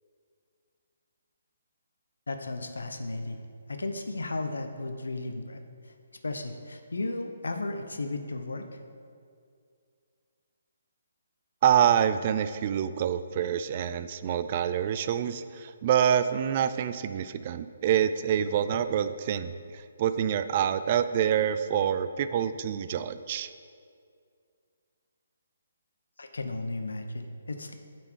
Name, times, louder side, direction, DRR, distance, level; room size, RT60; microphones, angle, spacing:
voice 1, 2.3-3.4 3.7-5.9 6.2-8.8 26.2-27.7, left 2 dB, 85° left, 6 dB, 0.7 m, -35 dB
voice 2, 11.6-23.5, right 9 dB, 40° right, 12 dB, 0.3 m, -26 dB
8.5 x 4.4 x 4.6 m, 2.3 s
hypercardioid pair, 150°, 0 cm